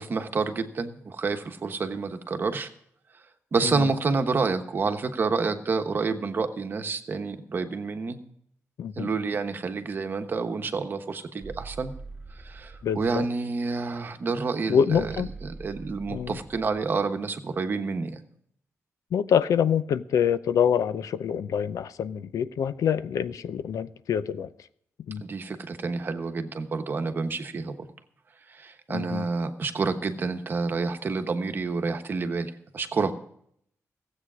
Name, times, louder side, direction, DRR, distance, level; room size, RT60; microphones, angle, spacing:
voice 1, 0.0-2.7 3.5-8.2 9.0-11.9 12.4-15.1 15.4-18.2 25.2-27.9 28.6-33.1, right 4 dB, 40° right, 1.1 m, -29 dB
voice 2, 8.8-9.1 12.8-13.3 14.7-15.3 16.1-16.4 19.1-24.5 25.1-25.2 28.9-29.3, left 8 dB, 85° left, 0.6 m, -26 dB
sound 1, 11.4-13.2 14.9-16.9, right 3 dB, 10° right, 0.8 m, -43 dB
16.0 x 8.1 x 6.2 m
wide cardioid pair, 160°, 6 cm